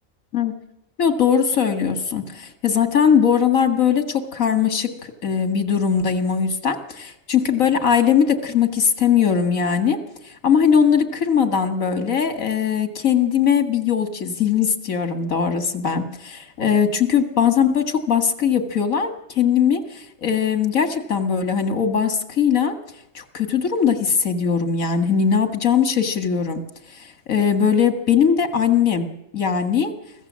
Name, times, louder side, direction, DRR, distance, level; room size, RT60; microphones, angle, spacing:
voice 1, 1.0-4.9 5.2-10.0 10.4-22.8 23.1-26.6 27.0-29.1 29.3-29.9, left 7 dB, 80° left, 8 dB, 2.3 m, -20 dB
24.5 x 16.0 x 7.5 m, 0.84 s
omnidirectional pair, 1.4 m